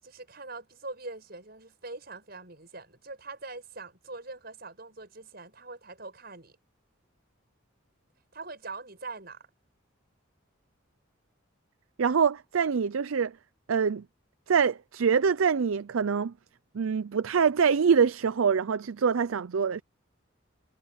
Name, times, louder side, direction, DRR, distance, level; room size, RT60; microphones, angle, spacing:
voice 1, 0.0-6.6 8.3-9.5, right 3 dB, 50° right, 7.8 m, -43 dB
voice 2, 12.0-13.3 13.7-14.0 14.5-16.3 16.7-19.8, right 6 dB, 85° right, 0.5 m, -25 dB
head